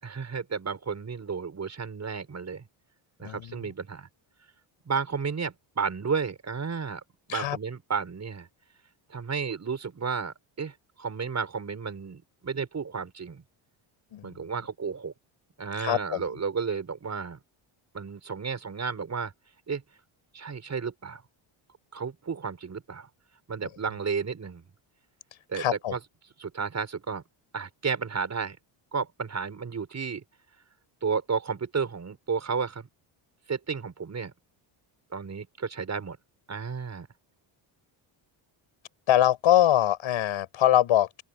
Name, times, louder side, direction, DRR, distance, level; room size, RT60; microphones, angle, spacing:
voice 1, 0.0-2.6 3.2-4.1 4.8-7.0 7.3-8.5 9.1-13.4 14.2-15.1 15.6-17.4 17.9-19.3 19.7-19.8 20.3-21.2 21.9-23.1 23.5-24.6 25.5-25.6 25.9-26.0 26.4-27.2 27.5-28.6 28.9-30.2 31.0-32.9 33.5-34.3 35.1-36.2 36.5-37.1, right 5 dB, 30° right, 6.2 m, -32 dB
voice 2, 3.2-3.7 7.3-7.6 14.1-14.5 15.8-16.2 25.5-25.9 39.1-41.2, left 12 dB, 70° left, 7.9 m, -23 dB
open air
cardioid pair, 115°, 50 cm